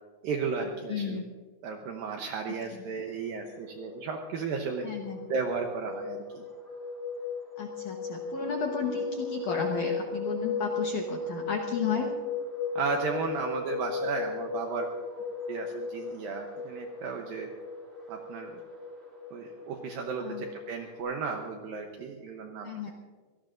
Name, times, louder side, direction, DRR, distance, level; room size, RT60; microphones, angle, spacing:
voice 1, 0.2-1.2 1.6-4.9 5.3-6.5 11.9-12.0 12.8-14.9 15.5-17.5 18.1-18.6 19.3-22.9, right 5 dB, 75° right, 3 dB, 2.1 m, -34 dB
voice 2, 0.9-1.2 4.8-5.2 7.6-12.1 20.2-20.4 22.6-22.9, left 6 dB, 70° left, 1 dB, 1.9 m, -33 dB
sound 1, 3.3-21.0, left 4 dB, 15° right, 4.2 m, -36 dB
25.5 x 18.0 x 2.6 m, 1.5 s
omnidirectional pair, 5.2 m